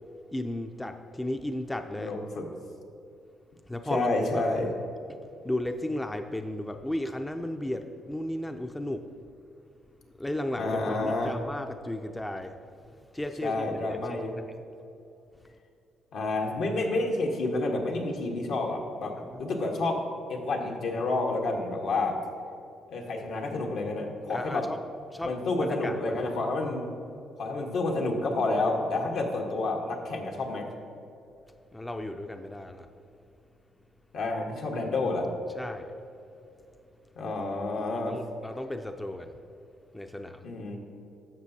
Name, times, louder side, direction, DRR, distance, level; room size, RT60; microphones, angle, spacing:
voice 1, 0.3-2.1 3.7-4.4 5.4-9.1 10.2-12.5 13.1-14.0 19.3-19.4 24.3-24.8 25.1-25.3 25.6-26.0 31.7-32.9 35.6-35.9 38.1-39.4 39.9-40.5, left 1 dB, 10° left, 6 dB, 0.4 m, -34 dB
voice 2, 2.0-2.4 3.9-4.7 10.6-11.4 13.4-14.4 16.1-20.0 20.3-22.2 22.9-24.7 25.2-26.9 27.4-30.7 34.1-35.3 37.2-38.2 40.4-40.8, left 2 dB, 75° left, 1 dB, 1.2 m, -29 dB
11.5 x 7.0 x 2.7 m, 2.7 s
cardioid pair, 90°, 0 cm